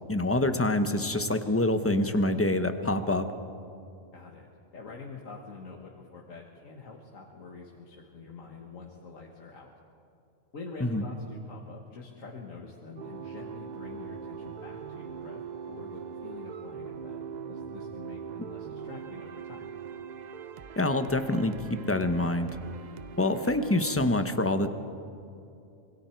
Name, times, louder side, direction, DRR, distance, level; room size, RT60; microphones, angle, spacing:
voice 1, 0.1-3.3 10.8-11.0 20.8-22.5 23.2-24.7, left 2 dB, 10° left, 8 dB, 0.8 m, -26 dB
voice 2, 4.1-9.7 10.5-15.4 15.7-17.2 17.5-19.7, left 4 dB, 75° left, -1 dB, 2.0 m, -46 dB
sound 1, 13.0-24.1, right 7 dB, 50° right, 0.5 m, -41 dB
26.5 x 21.5 x 4.6 m, 2.7 s
omnidirectional pair, 1.4 m